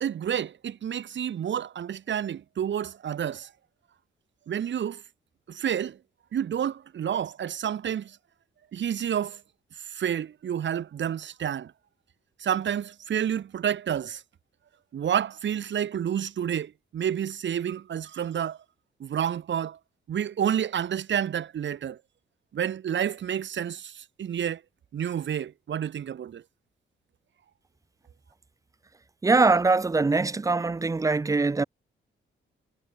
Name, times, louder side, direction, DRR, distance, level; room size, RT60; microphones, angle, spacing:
voice 1, 0.0-3.5 4.5-5.0 5.5-6.0 6.3-8.2 8.7-9.4 9.8-11.7 12.4-14.2 14.9-18.6 19.0-19.8 20.1-22.0 22.5-24.6 24.9-26.4, right 9 dB, 65° right, 1.4 m, -29 dB
voice 2, 29.2-31.6, right 3 dB, 15° right, 0.4 m, -22 dB
cardioid pair, 100°, 20 cm